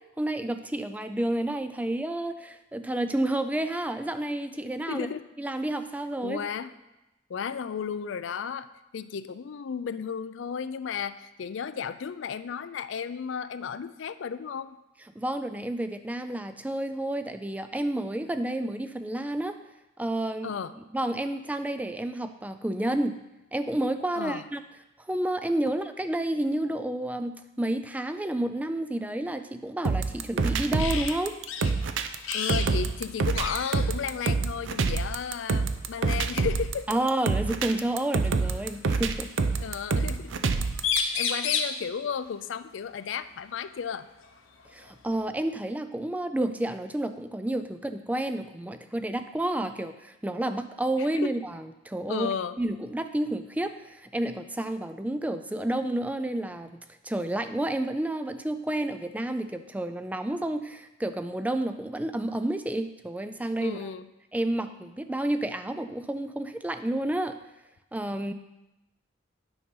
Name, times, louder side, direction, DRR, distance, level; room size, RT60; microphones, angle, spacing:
voice 1, 0.2-5.1 5.4-6.4 15.2-19.6 20.0-20.6 20.9-23.2 23.5-24.6 25.1-31.3 36.9-39.3 44.7-63.9 64.3-67.4 67.9-68.3, right 1 dB, 10° right, 9 dB, 0.3 m, -30 dB
voice 2, 4.9-5.3 6.2-6.7 7.3-8.7 8.9-14.8 20.4-20.8 24.2-24.4 32.3-36.9 39.6-40.3 41.1-44.1 51.0-51.3 52.1-52.6 63.6-64.1, left 7 dB, 70° left, 13 dB, 0.4 m, -34 dB
sound 1, 29.8-41.0, right 4 dB, 75° right, 0.6 m, -27 dB
sound 2, 30.8-31.2 31.5-31.7 32.2-32.7 33.0-33.1 33.3-33.9 35.1-35.3 37.0-37.1 38.2-39.1 40.5-40.6 40.8-41.8 43.7-43.8 44.3-45.3, left 6 dB, 90° left, 0.9 m, -30 dB
9.2 x 5.4 x 5.4 m, 0.97 s
head